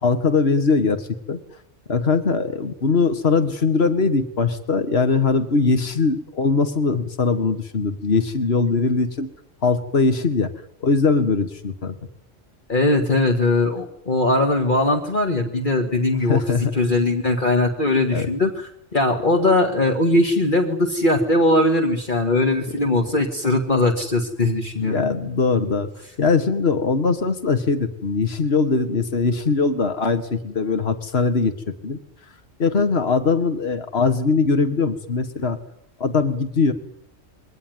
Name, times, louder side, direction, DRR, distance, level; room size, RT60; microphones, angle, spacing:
voice 1, 0.0-1.4 1.9-9.3 9.6-10.5 10.8-11.9 16.3-16.8 18.1-18.3 24.9-25.9 26.2-31.5 31.8-32.0 32.6-35.6 36.0-36.7, left 4 dB, 60° left, 9 dB, 2.1 m, -21 dB
voice 2, 12.7-25.0, left 2 dB, 45° left, 3 dB, 2.2 m, -20 dB
23.5 x 18.5 x 9.5 m, 0.75 s
omnidirectional pair, 1.2 m